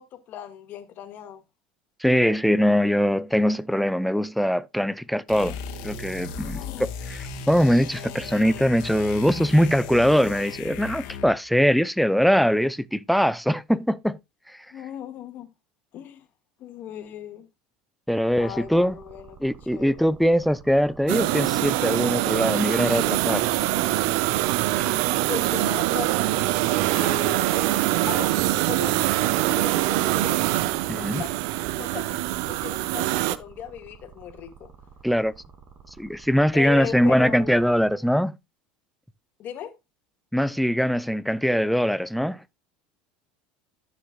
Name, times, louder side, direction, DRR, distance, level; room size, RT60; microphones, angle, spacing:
voice 1, 0.0-1.4 6.3-6.9 14.7-15.5 15.9-16.2 16.6-17.5 18.4-20.1 25.3-26.1 26.9-27.8 28.1-30.4 30.9-31.3 31.7-34.7 36.5-37.6 39.4-39.7, left 9 dB, 50° left, 2.0 m, -37 dB
voice 2, 2.0-5.6 5.8-6.6 7.1-14.2 18.1-19.0 19.4-23.4 30.9-31.2 35.0-35.3 36.0-38.3 40.3-42.4, equal, ahead, 0.6 m, -22 dB
sound 1, 5.3-11.4, left 6 dB, 70° left, 2.0 m, -36 dB
sound 2, 18.3-37.9, right 6 dB, 40° right, 3.1 m, -49 dB
sound 3, 21.1-33.4, right 16 dB, 70° right, 0.6 m, -24 dB
12.5 x 6.8 x 2.4 m
hypercardioid pair, 85°, 4 cm